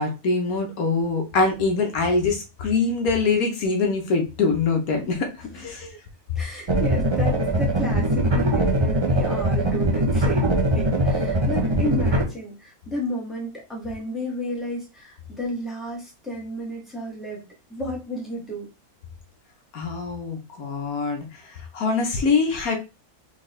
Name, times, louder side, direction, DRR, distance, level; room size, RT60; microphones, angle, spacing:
voice 1, 0.0-5.9 19.7-22.8, left 4 dB, 85° left, 3 dB, 1.5 m, -24 dB
voice 2, 5.6-6.0 6.4-17.4 17.7-18.7, equal, ahead, -4 dB, 1.8 m, -32 dB
sound 1, 6.7-12.2, right 1 dB, 25° right, 0.6 m, -21 dB
4.1 x 3.5 x 3.2 m, 0.28 s
omnidirectional pair, 1.5 m